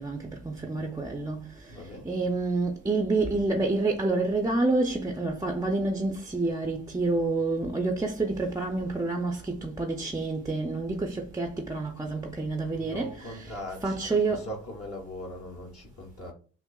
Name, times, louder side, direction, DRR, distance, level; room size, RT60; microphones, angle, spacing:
voice 1, 0.0-1.7 2.0-13.6 13.8-14.5, right 3 dB, 10° right, 0.4 m, -28 dB
voice 2, 1.7-2.1 12.7-16.3, equal, 50° left, 0.9 m, -40 dB
5.6 x 2.0 x 2.3 m
cardioid pair, 90°, 30 cm